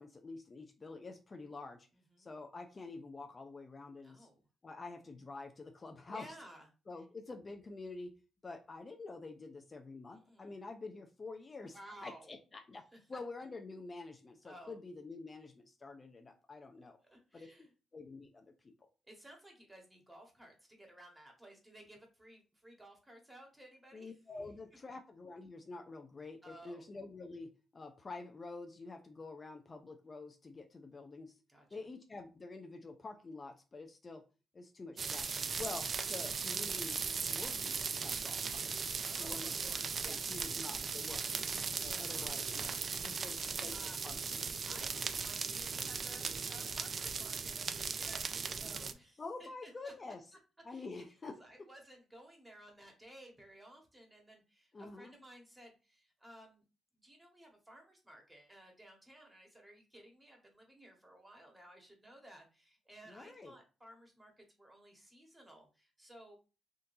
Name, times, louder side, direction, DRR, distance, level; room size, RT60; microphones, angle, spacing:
voice 1, 0.0-1.9 2.2-4.3 4.6-6.4 6.9-8.2 8.4-12.8 13.1-17.0 17.3-17.5 17.9-18.7 23.9-31.4 31.7-34.2 34.5-35.3 35.6-37.0 37.3-38.8 39.2-39.5 40.1-41.2 41.8-43.8 44.0-44.9 49.2-50.3 50.6-51.7 54.7-55.1 63.1-63.5, left 3 dB, 35° left, 4 dB, 0.5 m, -48 dB
voice 2, 1.9-2.3 4.0-4.4 6.1-6.7 10.1-10.6 11.7-12.3 14.4-14.8 17.1-17.7 19.1-24.1 24.4-24.5 26.4-26.8 31.5-31.8 39.0-40.4 41.1-41.3 42.0-43.0 43.3-44.1 44.6-49.9 50.7-50.9 51.4-56.6 57.0-66.4, right 1 dB, 15° right, 1 dB, 1.5 m, -57 dB
sound 1, 35.0-48.9, right 5 dB, 50° right, 0.4 m, -38 dB
3.7 x 2.6 x 2.7 m, 0.32 s
supercardioid pair, 60°, 0 cm